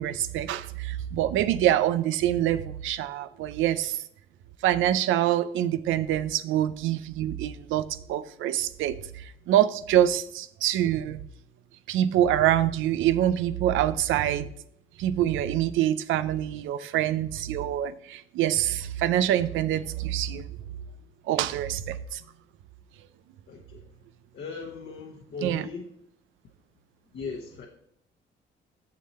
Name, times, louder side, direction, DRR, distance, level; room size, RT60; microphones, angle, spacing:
voice 1, 0.0-4.0 4.6-11.2 11.9-14.5 15.0-20.5 21.3-22.2 25.4-25.6, right 12 dB, 90° right, 0.5 m, -25 dB
voice 2, 23.5-23.8 24.3-25.9 27.1-27.7, left 4 dB, 60° left, 1.1 m, -38 dB
6.9 x 6.6 x 4.2 m
cardioid pair, 90°, 20 cm